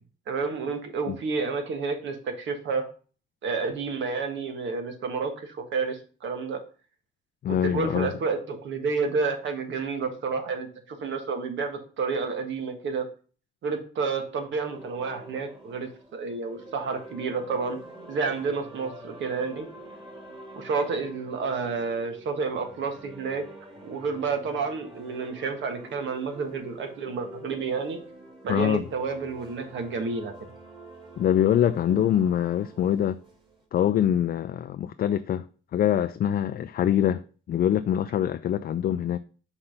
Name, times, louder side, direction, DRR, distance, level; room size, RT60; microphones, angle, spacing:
voice 1, 0.3-2.8 3.4-6.6 7.6-13.0 13.6-17.8 18.1-19.7 20.6-23.4 23.8-28.0 28.4-30.3 31.9-32.0, right 4 dB, 70° right, 1.5 m, -30 dB
voice 2, 7.4-8.1 28.5-28.8 31.2-33.2 33.7-35.4 35.7-37.2 37.5-39.2, left 10 dB, 50° left, 0.4 m, -24 dB
sound 1, 14.7-33.6, right 1 dB, 25° right, 2.3 m, -47 dB
5.8 x 3.3 x 5.6 m
cardioid pair, 90°, 20 cm